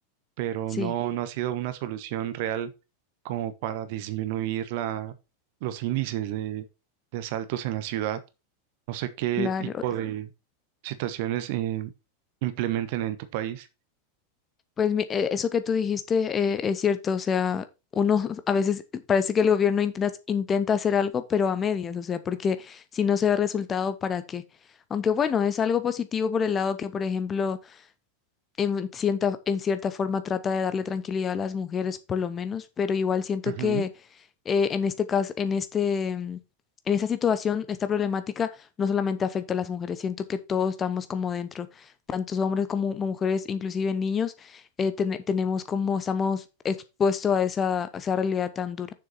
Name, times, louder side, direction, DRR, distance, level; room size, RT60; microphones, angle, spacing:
voice 1, 0.4-2.7 3.2-5.1 5.6-6.6 7.1-8.2 8.9-10.3 10.8-11.9 12.4-13.7 33.5-33.8, right 13 dB, 50° right, 1.1 m, -30 dB
voice 2, 9.4-9.8 14.8-17.6 17.9-24.4 24.9-27.6 28.6-33.9 34.5-36.4 36.9-38.5 38.8-41.7 42.1-48.9, left 6 dB, 20° left, 0.8 m, -26 dB
7.0 x 6.5 x 4.3 m
figure-of-eight pair, 90°, 0 cm